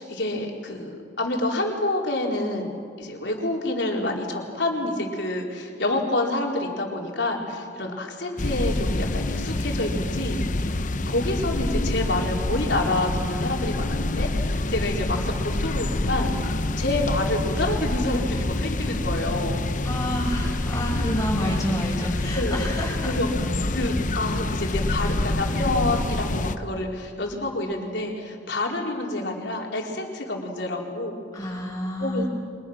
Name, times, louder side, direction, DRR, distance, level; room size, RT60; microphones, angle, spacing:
voice 1, 0.0-10.8 11.0-19.6 21.4-21.5 22.3-22.8 23.0-23.3 23.7-31.2 32.0-32.3, left 2 dB, 65° left, 0 dB, 4.2 m, -28 dB
sound 1, 8.4-26.5, left 2 dB, 45° left, 0.9 m, -26 dB
voice 2, 19.8-23.2 31.3-32.3, equal, 20° left, -3 dB, 7.4 m, -29 dB
30.0 x 25.5 x 6.4 m, 2.2 s
head